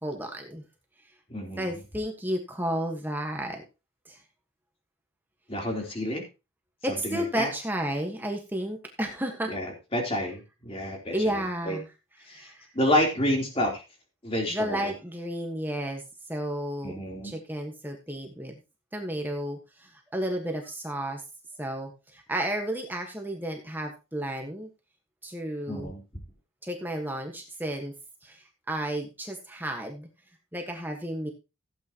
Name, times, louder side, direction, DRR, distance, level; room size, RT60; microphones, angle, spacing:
voice 1, 0.0-0.6 1.6-3.6 4.1-4.2 6.8-9.5 10.8-11.8 12.3-12.7 14.5-16.0 16.3-18.5 18.9-21.2 21.6-24.7 25.2-25.9 26.6-27.9 28.2-30.1 30.5-31.3, right 1 dB, 10° right, 3 dB, 1.4 m, -32 dB
voice 2, 1.3-1.8 5.5-6.2 6.9-7.5 9.5-11.8 12.3-12.5 12.7-13.8 14.2-14.9 16.8-17.4 25.7-26.0, left 1 dB, 30° left, 1 dB, 3.6 m, -29 dB
16.0 x 8.6 x 3.0 m, 0.28 s
head